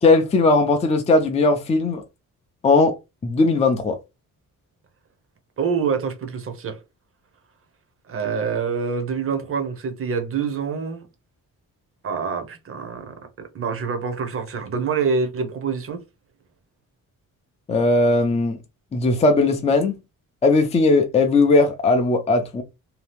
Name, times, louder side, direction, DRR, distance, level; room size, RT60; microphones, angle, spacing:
voice 1, 0.0-2.0 2.6-2.9 3.2-4.0 17.7-18.6 18.9-20.0 20.4-22.6, left 3 dB, 20° left, 0.5 m, -18 dB
voice 2, 5.6-6.8 8.1-11.1 12.0-16.0, right 5 dB, 40° right, 0.7 m, -26 dB
2.8 x 2.3 x 3.3 m
wide cardioid pair, 165°, 33 cm